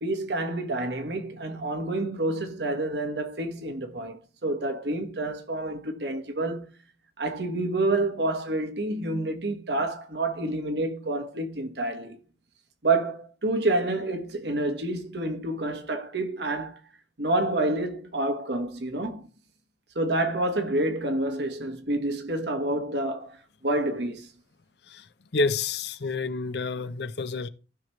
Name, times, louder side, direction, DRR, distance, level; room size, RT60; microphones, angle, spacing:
voice 1, 0.0-6.7 7.2-12.2 12.8-16.8 17.2-19.2 19.9-23.4 23.6-24.3, right 2 dB, 75° right, 1.5 m, -28 dB
voice 2, 25.3-27.5, left 3 dB, 70° left, 0.7 m, -29 dB
16.0 x 5.9 x 3.1 m
head